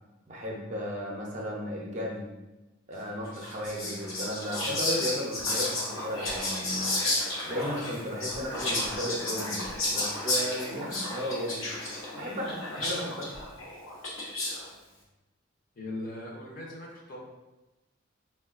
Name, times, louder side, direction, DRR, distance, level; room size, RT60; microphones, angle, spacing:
voice 1, 0.3-2.3 2.9-7.0 7.5-11.7 12.1-13.3, equal, 35° right, -1 dB, 0.4 m, -35 dB
Whispering, 3.3-14.7, left 1 dB, 80° left, 0.7 m, -32 dB
voice 2, 15.8-17.2, left 1 dB, 45° left, -2 dB, 0.5 m, -39 dB
3.5 x 2.2 x 2.4 m, 1.0 s
head